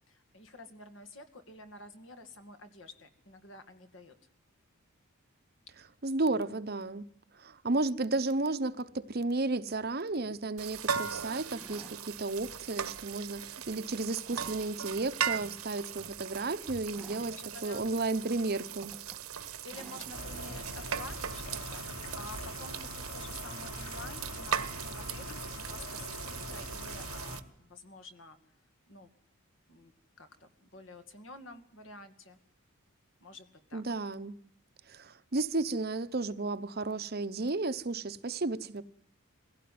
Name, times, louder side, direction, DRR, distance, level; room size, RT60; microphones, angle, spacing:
voice 1, 0.1-4.1 5.7-5.8 17.3-17.9 19.4-28.4 28.9-29.1 29.7-29.9 30.2-32.4 33.2-33.8, left 2 dB, 60° left, 2.3 m, -50 dB
voice 2, 6.0-7.1 7.3-17.4 17.6-18.9 33.7-34.4 34.9-38.8, right 3 dB, 45° right, 0.8 m, -33 dB
sound 1, 10.2-10.4 11.4-12.0 12.7-12.9 13.5-14.7 16.0-16.2 16.9-17.4 18.3-18.4 18.8-19.2 19.7-20.2 21.0-21.1, right 1 dB, 5° left, 1.9 m, -53 dB
sound 2, 10.6-27.4, right 7 dB, 85° right, 1.2 m, -39 dB
sound 3, 20.1-27.4, left 1 dB, 80° left, 3.1 m, -42 dB
23.0 x 16.5 x 9.4 m
head